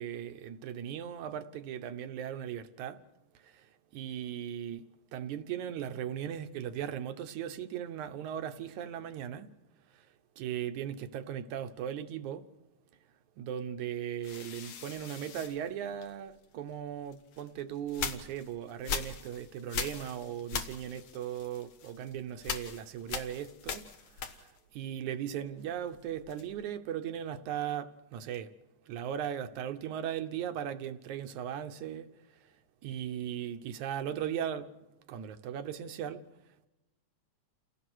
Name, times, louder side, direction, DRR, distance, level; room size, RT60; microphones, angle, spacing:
voice 1, 0.0-3.0 3.3-9.5 9.9-12.5 13.4-28.5 28.9-32.5 32.8-34.7 35.1-36.2, right 9 dB, 75° right, 2.4 m, -38 dB
sound 1, 14.2-16.5 17.1-24.8 25.1-26.7, left 7 dB, 65° left, 2.6 m, -41 dB
29.5 x 17.5 x 6.3 m
omnidirectional pair, 3.5 m